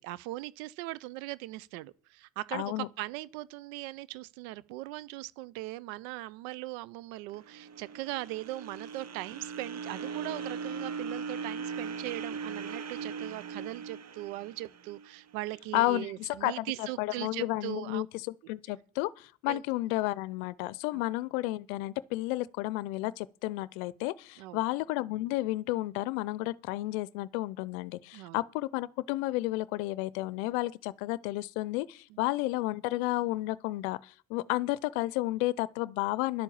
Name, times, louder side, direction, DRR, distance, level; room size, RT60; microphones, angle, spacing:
voice 1, 0.0-18.0 19.5-19.6 20.9-21.0 24.4-24.6 28.1-28.4 32.1-32.2, right 18 dB, 85° right, 0.6 m, -40 dB
voice 2, 2.5-2.9 15.7-36.4, left 18 dB, 85° left, 0.6 m, -32 dB
sound 1, 7.3-15.6, right 5 dB, 40° right, 1.0 m, -39 dB
11.5 x 8.2 x 7.1 m
hypercardioid pair, 50°, 40 cm